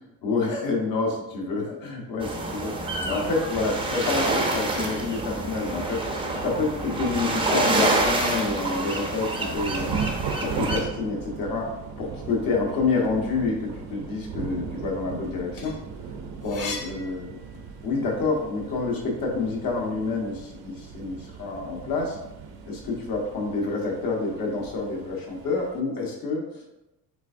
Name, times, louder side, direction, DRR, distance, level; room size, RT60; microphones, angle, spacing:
voice 1, 0.2-6.0 6.4-10.0 10.4-15.8 16.4-22.2 22.6-26.6, left 3 dB, 65° left, -1 dB, 1.3 m, -28 dB
sound 1, 2.2-10.8, right 2 dB, 15° right, 0.4 m, -27 dB
Thunder / Rain, 9.5-25.8, right 6 dB, 75° right, 0.7 m, -38 dB
sound 2, 15.3-18.0 18.4-19.8, left 4 dB, 40° left, 0.7 m, -39 dB
5.9 x 3.4 x 2.6 m, 0.92 s
cardioid pair, 180°, 37 cm